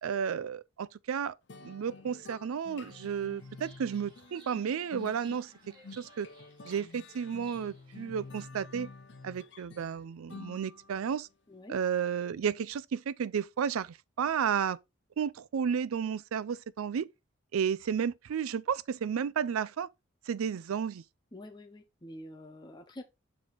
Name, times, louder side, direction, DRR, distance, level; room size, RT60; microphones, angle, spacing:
voice 1, 0.0-1.3 1.6-5.5 5.9-6.3 6.6-8.9 9.2-11.3 11.7-14.8 15.2-17.1 17.5-19.9 20.3-21.0, right 7 dB, 90° right, 0.4 m, -32 dB
sound 1, 1.5-11.1, left 3 dB, 55° left, 0.7 m, -50 dB
Chirp tweet, 2.6-8.4, right 1 dB, 25° right, 2.3 m, -60 dB
voice 2, 21.3-23.0, left 1 dB, 20° left, 0.8 m, -47 dB
6.1 x 4.6 x 3.9 m
head